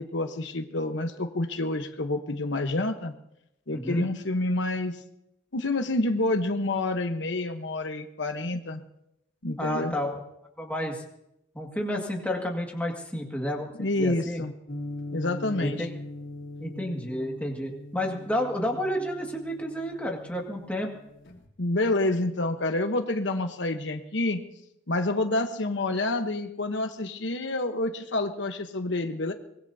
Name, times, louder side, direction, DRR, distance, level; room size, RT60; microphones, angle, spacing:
voice 1, 0.0-3.1 3.7-5.0 5.5-8.8 9.4-9.9 13.8-14.5 15.1-15.9 21.6-24.4 24.9-29.3, left 2 dB, 75° left, 6 dB, 1.1 m, -28 dB
voice 2, 3.7-4.1 8.5-8.6 9.6-10.2 10.6-11.0 11.6-13.7 14.0-14.4 15.6-15.9 16.6-20.9, equal, 10° left, 0 dB, 2.0 m, -30 dB
sound 1, 14.7-21.5, left 2 dB, 90° left, 3.4 m, -41 dB
24.0 x 20.0 x 2.8 m, 0.82 s
head